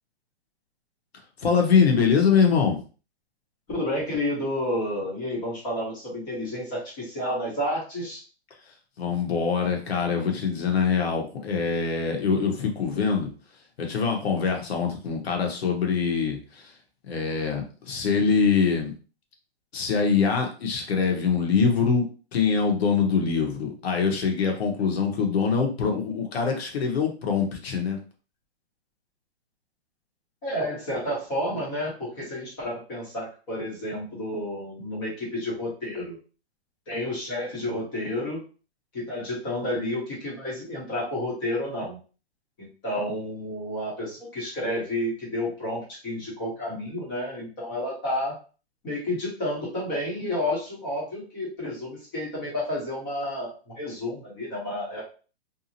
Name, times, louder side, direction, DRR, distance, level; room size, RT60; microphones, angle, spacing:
voice 1, 1.4-2.8 9.0-13.3 13.8-16.7 17.1-18.9 19.7-22.0 22.3-28.0, left 6 dB, 65° left, 3 dB, 0.9 m, -24 dB
voice 2, 3.7-8.2 30.4-36.2 36.9-38.4 38.9-42.0 42.6-48.4 48.8-55.0, left 1 dB, 20° left, -5 dB, 0.8 m, -30 dB
2.7 x 2.0 x 2.7 m, 0.36 s
hypercardioid pair, 165°, 33 cm